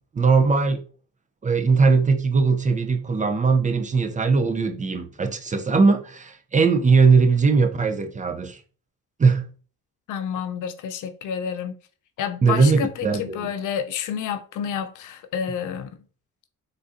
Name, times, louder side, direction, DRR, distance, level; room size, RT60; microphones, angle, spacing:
voice 1, 0.1-0.8 1.4-8.6 9.2-9.4 12.4-13.5, right 4 dB, 25° right, 0.4 m, -20 dB
voice 2, 10.1-11.7 12.2-15.9, left 8 dB, 70° left, 0.5 m, -29 dB
3.8 x 2.5 x 2.5 m
cardioid pair, 75°, 32 cm